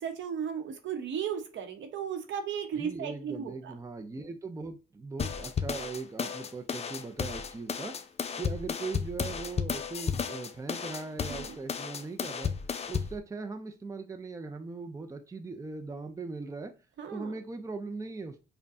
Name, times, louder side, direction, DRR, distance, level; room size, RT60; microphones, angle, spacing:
voice 1, 0.0-3.7 11.3-11.5 17.0-17.3, right 7 dB, 70° right, 6 dB, 0.9 m, -35 dB
voice 2, 2.8-7.9 8.4-12.5 12.9-16.7 17.1-18.4, right 3 dB, 15° right, 6 dB, 0.5 m, -39 dB
sound 1, 5.2-13.2, left 6 dB, 30° left, 0.5 m, -33 dB
5.1 x 2.2 x 2.6 m, 0.32 s
cardioid pair, 90°, 20 cm